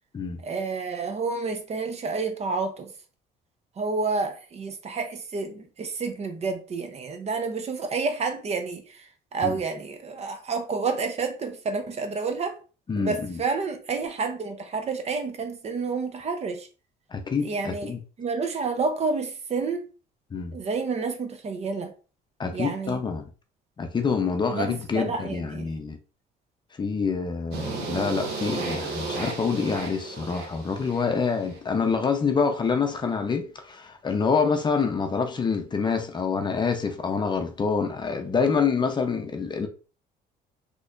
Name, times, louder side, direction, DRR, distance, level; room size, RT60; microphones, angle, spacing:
voice 1, 0.4-2.9 3.8-12.6 13.0-16.7 17.4-19.8 20.5-21.9 22.5-23.0 24.5-25.8, right 4 dB, 40° right, 0.7 m, -29 dB
voice 2, 12.9-13.4 17.1-18.0 20.3-20.5 22.4-23.2 23.8-26.0 26.8-39.7, left 5 dB, 25° left, 0.6 m, -26 dB
sound 1, 27.5-31.6, right 4 dB, 80° right, 1.1 m, -34 dB
4.0 x 2.9 x 2.4 m
cardioid pair, 110°, 17 cm